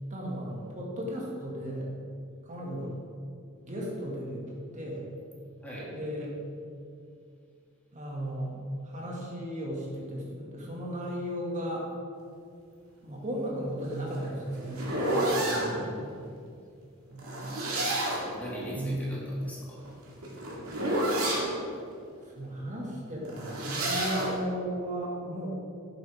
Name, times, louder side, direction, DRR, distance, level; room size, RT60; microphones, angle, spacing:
voice 1, 0.1-1.9 2.5-2.9 3.6-5.0 5.9-6.3 7.9-8.6 8.8-11.9 13.0-15.0 15.6-15.9 16.5-16.6 17.1-17.5 18.7-19.0 22.2-25.5, equal, 35° right, -3 dB, 2.0 m, -35 dB
sound 1, 13.9-15.7 17.2-18.4 19.8-21.5 23.2-24.4, right 1 dB, 75° right, 2.1 m, -29 dB
voice 2, 15.5-16.0 18.3-19.8, equal, 10° left, -7 dB, 2.5 m, -40 dB
10.5 x 8.1 x 3.6 m, 2.4 s
head